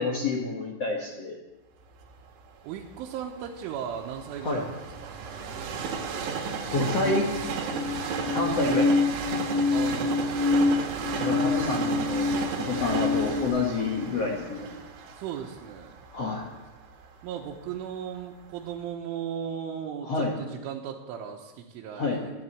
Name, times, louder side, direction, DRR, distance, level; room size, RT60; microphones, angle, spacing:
voice 1, 0.0-1.4 4.4-4.6 6.7-7.3 8.3-8.9 11.2-12.3 12.6-14.7 16.1-16.5 20.0-20.4 21.9-22.2, left 3 dB, 80° left, -1 dB, 1.4 m, -28 dB
Train, 2.0-18.0 18.6-18.7, right 5 dB, 65° right, 3.8 m, -34 dB
voice 2, 2.6-5.1 9.7-10.6 15.2-16.0 17.2-22.3, right 8 dB, 85° right, -1 dB, 3.6 m, -36 dB
sound 1, 7.0-13.5, left 3 dB, 50° left, 3.5 m, -27 dB
14.0 x 11.5 x 8.4 m, 1.1 s
omnidirectional pair, 5.5 m